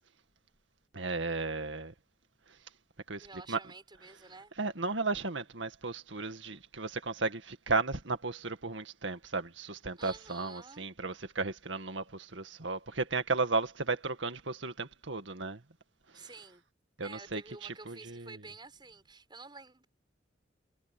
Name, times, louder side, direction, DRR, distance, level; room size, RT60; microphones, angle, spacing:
voice 1, 0.9-1.9 3.1-3.6 4.6-15.6 17.0-18.4, right 3 dB, 90° right, 2.0 m, -34 dB
voice 2, 3.2-4.5 10.0-10.9 16.1-16.6 17.0-19.9, right 3 dB, 25° right, 6.7 m, -50 dB
head